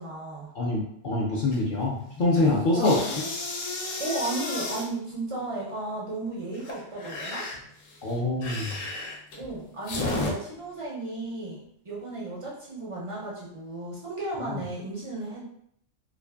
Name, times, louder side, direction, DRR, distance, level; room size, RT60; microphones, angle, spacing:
voice 1, 0.0-0.5 2.7-3.1 4.0-7.5 9.4-15.4, right 2 dB, 55° right, -5 dB, 0.3 m, -34 dB
voice 2, 0.6-2.9 8.0-8.7 14.5-14.6, left 2 dB, 65° left, -4 dB, 0.5 m, -25 dB
sound 1, 1.5-1.9 2.2-4.9 6.5-10.3, left 2 dB, 90° left, 1.0 m, -33 dB
2.5 x 2.4 x 2.2 m, 0.69 s
omnidirectional pair, 1.3 m